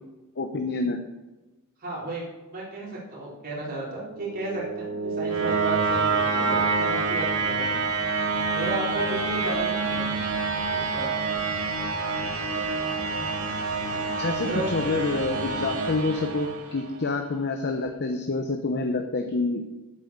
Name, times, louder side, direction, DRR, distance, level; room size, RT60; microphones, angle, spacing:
voice 1, 0.4-1.0 9.4-9.7 14.2-19.6, left 3 dB, 50° left, 5 dB, 0.9 m, -27 dB
voice 2, 1.8-2.2 2.5-7.8 8.5-10.2 10.8-11.1 14.4-14.7, right 2 dB, 40° right, -5 dB, 4.1 m, -33 dB
sound 1, 4.0-17.0, right 4 dB, 80° right, 2.4 m, -27 dB
8.9 x 8.3 x 6.8 m, 1.1 s
head